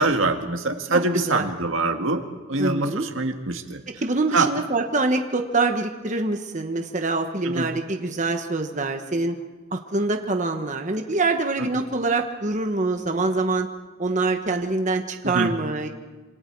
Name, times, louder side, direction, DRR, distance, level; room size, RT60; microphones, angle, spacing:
voice 1, 0.0-2.2 2.5-3.8 4.3-4.5 7.4-7.7 11.6-11.7 15.2-15.5, right 3 dB, 80° right, 5 dB, 1.9 m, -24 dB
voice 2, 0.9-1.4 2.6-3.0 4.0-9.3 9.7-13.7 14.0-15.9, right 3 dB, 35° right, 4 dB, 1.3 m, -25 dB
27.0 x 27.0 x 4.7 m, 1.3 s
head